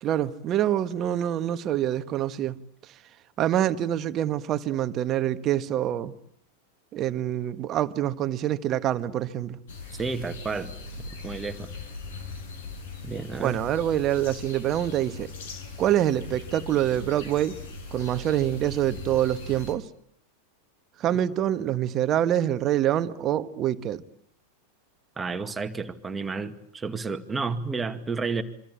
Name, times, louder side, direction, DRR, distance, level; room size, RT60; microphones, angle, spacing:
voice 1, 0.0-2.6 3.4-6.1 6.9-9.6 13.4-15.3 15.8-17.6 17.9-19.8 21.0-24.0, right 11 dB, 30° right, 1.5 m, -25 dB
sound 1, 9.7-19.7, left 3 dB, 55° left, 6.0 m, -40 dB
voice 2, 10.0-10.7 11.2-11.7 13.0-13.6 25.2-28.4, right 4 dB, 15° right, 2.1 m, -31 dB
26.0 x 25.5 x 8.8 m
figure-of-eight pair, 90°, 0 cm